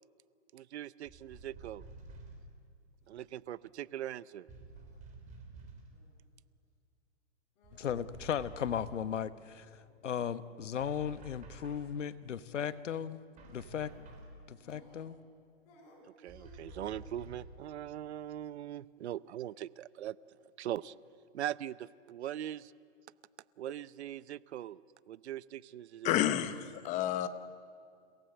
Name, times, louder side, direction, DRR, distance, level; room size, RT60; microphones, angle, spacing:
voice 1, 0.5-1.9 3.1-4.5 16.2-20.9 21.3-22.7 23.6-24.8 25.1-26.3, right 12 dB, 65° right, 19 dB, 0.7 m, -41 dB
sound 1, 1.1-2.5 4.5-5.9 7.6-9.1 10.8-12.0 13.4-14.4 16.3-17.6, right 2 dB, 20° right, 3.7 m, -51 dB
sound 2, 2.9-3.1 3.5-3.9 4.6-5.0 5.9-6.3 7.6-8.3 8.5-8.6 9.3-10.5 11.8-12.2 12.5-12.8 13.6-14.3 14.6-15.4 15.7-17.1 17.7-18.2, left 1 dB, 40° left, 7.3 m, -62 dB
voice 2, 7.7-9.7 10.0-13.2 13.5-13.9 14.5-15.2, left 8 dB, 90° left, 14 dB, 1.2 m, -36 dB
voice 3, 26.0-27.3, left 11 dB, 20° left, 12 dB, 0.9 m, -30 dB
29.0 x 17.0 x 7.9 m, 2.3 s
hypercardioid pair, 145°, 36 cm